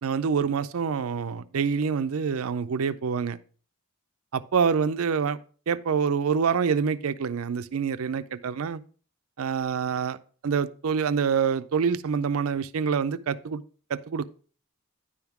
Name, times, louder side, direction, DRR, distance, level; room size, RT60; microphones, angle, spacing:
voice 1, 0.0-3.4 4.3-5.4 5.7-8.8 9.4-10.2 10.4-13.6 13.9-14.3, right 6 dB, 75° right, 0.5 m, -26 dB
10.0 x 3.6 x 5.8 m
head